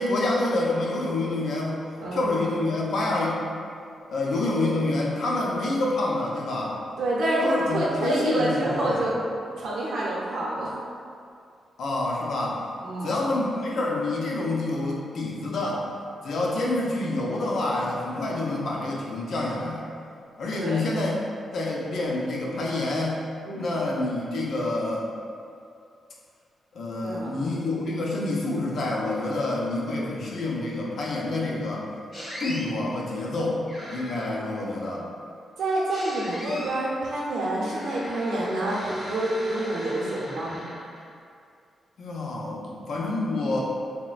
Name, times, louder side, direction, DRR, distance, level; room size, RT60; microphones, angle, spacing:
voice 1, 0.0-1.8 2.1-3.4 4.1-6.8 7.4-9.0 11.8-12.6 13.0-15.8 16.2-19.9 20.4-21.2 21.5-23.2 23.5-25.1 26.7-31.9 32.4-33.6 33.9-35.1 42.0-43.6, left 2 dB, 70° left, -3 dB, 0.5 m, -27 dB
voice 2, 2.0-2.3 7.0-9.2 9.6-10.7 12.8-13.1 20.6-20.8 23.4-23.7 27.0-27.4 35.6-40.6, right 1 dB, 80° right, -6 dB, 0.7 m, -27 dB
sound 1, 32.1-32.6 33.7-34.4 35.9-36.9 37.6-41.1, equal, 35° left, 1.1 m, -39 dB
3.8 x 2.1 x 2.4 m, 2.4 s
cardioid pair, 100°, 0 cm